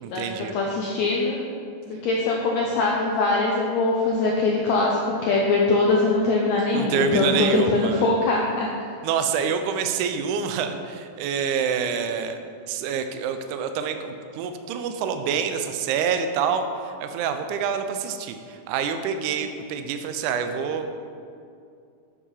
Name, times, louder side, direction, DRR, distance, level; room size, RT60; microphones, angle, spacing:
voice 1, 0.0-0.6 6.7-8.0 9.0-12.4 12.7-21.0, right 6 dB, 85° right, 7 dB, 1.8 m, -27 dB
voice 2, 0.5-1.4 2.0-8.7, left 3 dB, 85° left, -2 dB, 1.5 m, -22 dB
8.3 x 4.9 x 5.5 m, 2.4 s
omnidirectional pair, 4.1 m